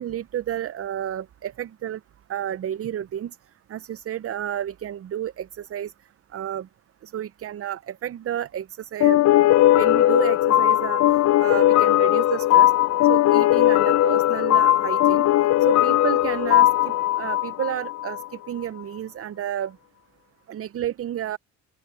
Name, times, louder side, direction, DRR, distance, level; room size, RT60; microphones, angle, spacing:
voice 1, 0.0-2.0 2.3-3.4 3.7-5.9 6.3-6.7 7.0-9.2 9.7-11.0 11.4-12.7 13.1-15.3 15.6-19.8 20.5-21.4, right 10 dB, 40° right, 0.6 m, -31 dB
sound 1, 9.0-18.3, left 14 dB, 50° left, 0.5 m, -18 dB
open air
supercardioid pair, 75°, 35 cm